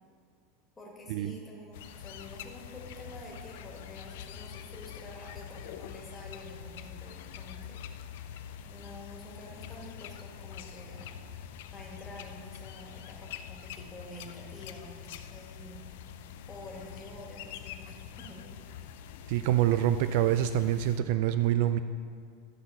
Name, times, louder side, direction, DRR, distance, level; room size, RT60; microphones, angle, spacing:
voice 1, 0.8-7.9 8.7-15.8 16.5-18.9, left 1 dB, 10° left, -3 dB, 1.9 m, -48 dB
sound 1, 1.7-21.0, left 9 dB, 70° left, 0.5 m, -45 dB
voice 2, 19.3-21.8, right 12 dB, 55° right, 11 dB, 0.3 m, -26 dB
13.0 x 5.8 x 5.6 m, 2.1 s
supercardioid pair, 165°, 0 cm